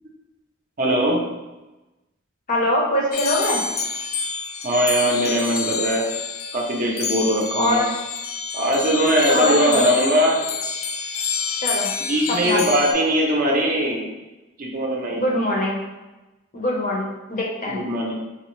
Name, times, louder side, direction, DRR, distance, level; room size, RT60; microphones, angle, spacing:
voice 1, 0.8-1.2 4.6-6.0 6.5-7.8 8.5-10.4 12.1-14.1 14.6-15.2 17.7-18.1, equal, 45° right, -1 dB, 0.5 m, -20 dB
voice 2, 2.5-3.6 7.5-7.9 9.3-9.8 11.6-11.9 12.3-12.6 15.1-15.8 16.5-17.8, left 1 dB, 40° left, -2 dB, 0.7 m, -23 dB
sound 1, 3.1-12.9, left 5 dB, 80° left, 0.4 m, -28 dB
3.6 x 2.0 x 3.0 m, 1.1 s
head